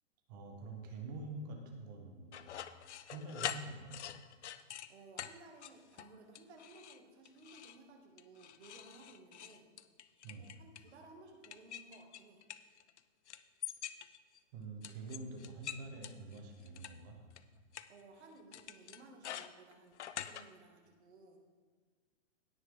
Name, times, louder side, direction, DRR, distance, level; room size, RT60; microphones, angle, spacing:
voice 1, 0.3-2.6 3.1-4.0 10.2-10.5 14.5-17.2, right 3 dB, 15° right, 3 dB, 0.8 m, -46 dB
sound 1, 2.3-4.9 5.2-5.3 5.6-6.1 6.3-7.0 7.2-7.8 8.2-10.9 11.4-13.0 13.3-14.4 14.8-16.9 17.4-17.5 17.7-17.8 18.5-20.4, left 10 dB, 65° left, 0.6 m, -45 dB
voice 2, 4.9-9.7 10.4-12.4 17.9-21.4, right 3 dB, 60° right, 1 dB, 2.2 m, -58 dB
17.5 x 6.5 x 3.7 m, 1.5 s
hypercardioid pair, 170°, 38 cm